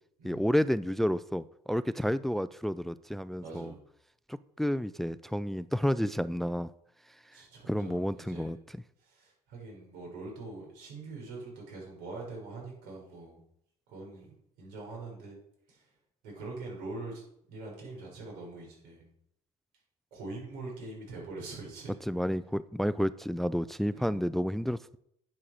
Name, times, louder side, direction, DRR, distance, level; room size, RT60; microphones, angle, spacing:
voice 1, 0.2-3.7 4.3-6.7 7.7-8.6 22.0-25.0, equal, ahead, 16 dB, 0.3 m, -30 dB
voice 2, 3.4-3.8 7.3-8.6 9.0-13.4 13.9-14.3 14.6-15.4 15.7-15.8 16.2-17.2 17.5-19.1 20.1-21.9 24.0-24.2, right 3 dB, 90° right, -1 dB, 6.1 m, -43 dB
11.0 x 7.5 x 6.6 m, 0.75 s
cardioid pair, 115°, 13 cm